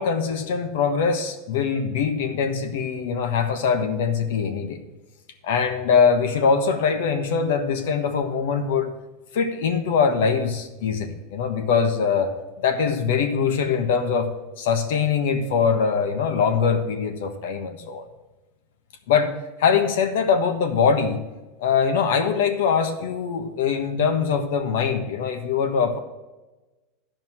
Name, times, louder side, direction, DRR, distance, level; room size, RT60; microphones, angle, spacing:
voice 1, 0.0-4.8 5.4-8.9 9.3-12.3 12.6-14.3 14.6-18.0 19.1-21.2 21.6-26.0, left 6 dB, 70° left, 7 dB, 1.3 m, -22 dB
11.0 x 5.2 x 7.5 m, 1.1 s
supercardioid pair, 165°, 0 cm